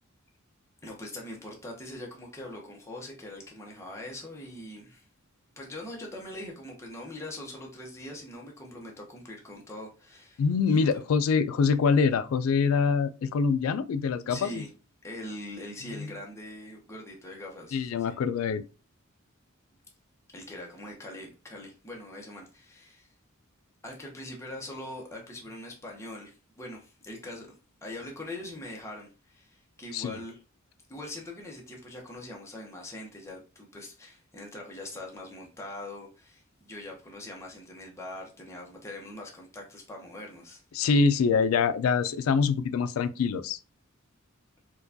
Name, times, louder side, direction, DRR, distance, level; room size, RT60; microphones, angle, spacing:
voice 1, 0.8-5.1 5.6-10.8 14.3-14.7 15.0-18.2 20.3-23.1 23.8-27.5 27.8-30.4 30.9-40.6, left 1 dB, 15° left, 0.7 m, -42 dB
voice 2, 10.4-14.6 17.7-18.6 29.9-30.1 40.7-43.6, left 5 dB, 80° left, 0.3 m, -25 dB
4.4 x 2.2 x 2.6 m
head